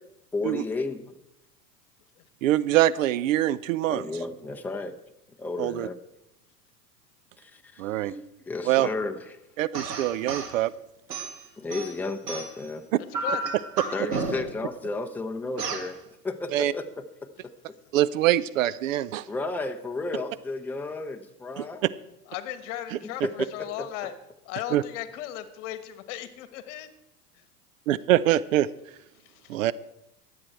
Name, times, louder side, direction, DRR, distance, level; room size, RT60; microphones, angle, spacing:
voice 1, 0.3-1.1 3.9-4.9 5.4-6.0 7.4-9.4 11.6-12.9 13.9-17.0 17.7-17.8 19.3-21.9 23.0-23.9, left 3 dB, 5° left, 4 dB, 0.8 m, -33 dB
voice 2, 2.4-4.0 5.6-5.9 7.8-8.1 8.6-8.9 9.6-10.7 16.5-16.7 17.9-19.3 21.6-21.7 24.7-24.8 27.9-28.7 29.5-29.7, right 14 dB, 55° right, 17 dB, 0.6 m, -24 dB
sound 1, 9.7-10.5 11.1-12.7 13.1-14.6 15.6-15.9, right 4 dB, 80° right, 1.9 m, -32 dB
voice 3, 13.0-13.4 13.8-14.1 17.4-17.5 17.8-17.9 22.3-24.1 24.4-26.9 27.3-27.4 29.2-29.6, left 12 dB, 50° left, 12 dB, 1.4 m, -37 dB
23.0 x 8.0 x 4.5 m, 0.83 s
figure-of-eight pair, 90°, 47 cm